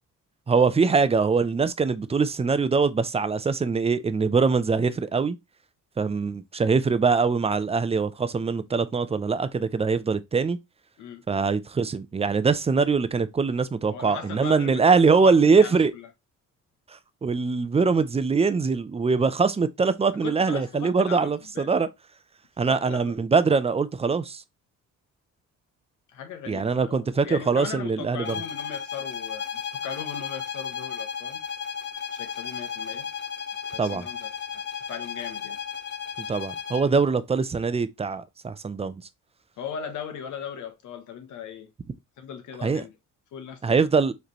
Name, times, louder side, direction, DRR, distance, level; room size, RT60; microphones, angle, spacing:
voice 1, 0.5-5.4 6.0-10.6 11.3-15.9 17.2-21.9 22.6-24.4 26.5-28.3 33.8-34.1 36.2-39.0 42.6-42.8 43.6-44.1, right 4 dB, 20° right, 0.5 m, -23 dB
voice 2, 13.9-14.8 15.1-16.1 20.2-21.8 22.7-23.2 26.1-31.4 32.1-33.1 33.7-34.6 34.9-35.6 39.6-41.7 42.2-42.9 43.3-43.9, left 7 dB, 75° left, 1.2 m, -38 dB
sound 1, 28.2-36.9, left 7 dB, 35° left, 0.6 m, -34 dB
4.9 x 3.3 x 3.0 m
cardioid pair, 90°, 30 cm